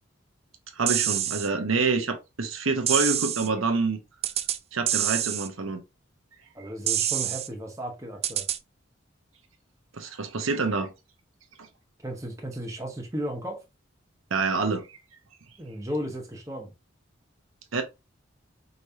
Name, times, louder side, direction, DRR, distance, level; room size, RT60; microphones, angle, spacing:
voice 1, 0.7-4.0 4.7-5.8 6.6-6.7 9.9-10.9 14.3-14.9 17.7-17.8, right 4 dB, 85° right, 1.0 m, -27 dB
sound 1, 0.9-1.5 2.9-3.5 4.2-4.6 4.9-5.5 6.9-7.5 8.2-8.6, right 11 dB, 30° right, 0.4 m, -26 dB
voice 2, 6.5-8.5 12.0-13.6 15.6-16.7, equal, 15° right, 1.1 m, -34 dB
5.2 x 3.2 x 2.7 m
head